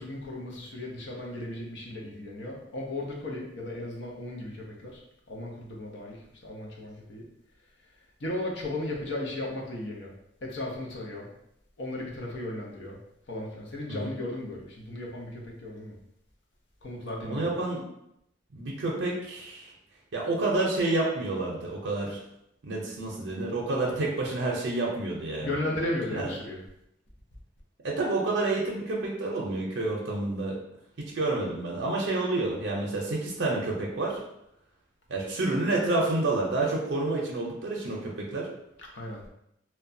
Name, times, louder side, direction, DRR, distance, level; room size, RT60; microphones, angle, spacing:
voice 1, 0.0-5.0 5.3-7.3 8.2-10.1 10.4-11.3 11.8-13.0 13.3-16.0 16.8-17.5 25.4-26.6 38.9-39.2, left 1 dB, 65° left, -2 dB, 0.6 m, -35 dB
voice 2, 17.3-17.8 18.5-19.7 20.1-22.2 22.6-25.5 27.8-30.6 31.1-34.2 35.1-38.5, right 2 dB, 70° right, -3 dB, 0.5 m, -29 dB
2.9 x 2.2 x 2.5 m, 0.80 s
head